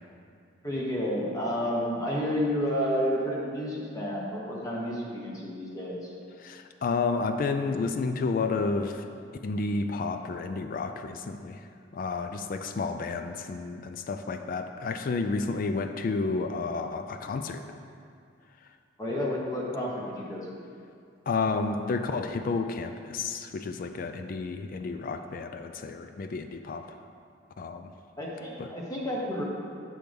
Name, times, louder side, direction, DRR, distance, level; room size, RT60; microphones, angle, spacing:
voice 1, 0.6-6.1 19.0-20.6 28.2-29.4, equal, 20° left, -4 dB, 1.2 m, -30 dB
voice 2, 6.4-9.1 9.4-11.6 11.9-17.6 21.3-27.0 27.6-27.9 28.6-28.7, left 4 dB, 45° left, 7 dB, 0.3 m, -31 dB
7.6 x 6.0 x 3.5 m, 2.3 s
head